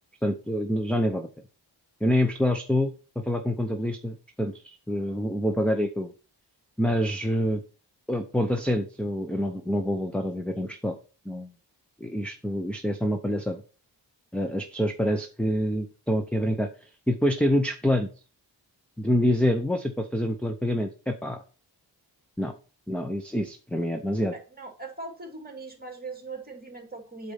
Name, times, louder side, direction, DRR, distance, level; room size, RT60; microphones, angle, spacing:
voice 1, 0.2-1.3 2.0-2.9 3.2-6.1 6.8-7.6 8.1-11.0 11.3-11.5 12.0-13.6 14.3-18.1 19.0-21.4 22.4-22.5 22.9-24.3, equal, 5° left, 6 dB, 0.6 m, -26 dB
voice 2, 24.6-27.3, right 3 dB, 20° right, 3 dB, 2.0 m, -40 dB
8.4 x 4.1 x 5.6 m, 0.35 s
wide cardioid pair, 155°, 42 cm